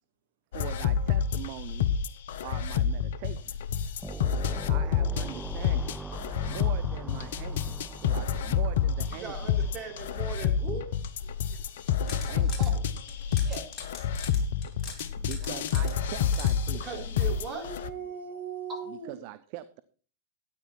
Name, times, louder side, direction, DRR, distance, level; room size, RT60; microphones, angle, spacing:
sound 1, 0.5-17.9, left 7 dB, 60° left, 0.7 m, -28 dB
voice 1, 0.5-1.9 2.4-3.6 4.7-6.0 6.4-9.5 12.1-12.7 15.2-17.1 18.9-19.8, right 17 dB, 50° right, 13 dB, 0.6 m, -42 dB
sound 2, 4.0-10.5, right 3 dB, 5° right, 0.8 m, -42 dB
voice 2, 9.1-10.9 12.3-13.9 16.7-17.7 18.7-18.8, right 5 dB, 25° right, 1 dB, 3.9 m, -40 dB
sound 3, 11.8-12.7 13.1-16.5, left 6 dB, 35° left, 3.6 m, -42 dB
voice 3, 17.4-19.2, right 6 dB, 75° right, 5 dB, 2.3 m, -39 dB
13.0 x 9.6 x 4.6 m, 0.41 s
figure-of-eight pair, 95°, 0 cm